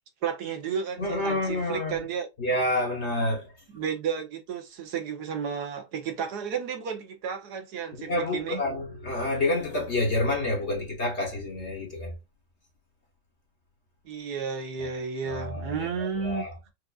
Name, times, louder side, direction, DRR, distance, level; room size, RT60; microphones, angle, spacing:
voice 1, 0.2-2.3 3.7-8.6 14.0-16.5, right 6 dB, 65° right, 1.2 m, -32 dB
voice 2, 1.0-2.0 2.4-3.5 8.0-12.2 14.8-14.9 15.2-16.5, left 1 dB, 40° left, 1.1 m, -28 dB
4.7 x 2.5 x 2.3 m
omnidirectional pair, 2.2 m